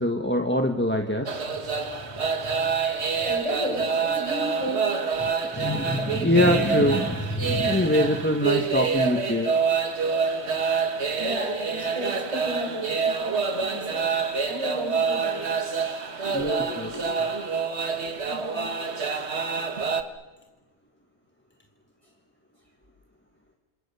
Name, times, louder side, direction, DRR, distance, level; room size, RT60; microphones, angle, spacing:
voice 1, 0.0-1.4 5.2-9.9 16.3-16.9, left 1 dB, 10° left, 4 dB, 1.2 m, -24 dB
sound 1, 1.3-20.0, right 5 dB, 55° right, 1.7 m, -27 dB
voice 2, 3.2-4.9 11.1-14.1 14.4-15.5 16.2-17.2 18.3-18.7, right 1 dB, 25° right, 0 dB, 7.3 m, -34 dB
27.5 x 27.0 x 6.9 m, 1.2 s
omnidirectional pair, 1.4 m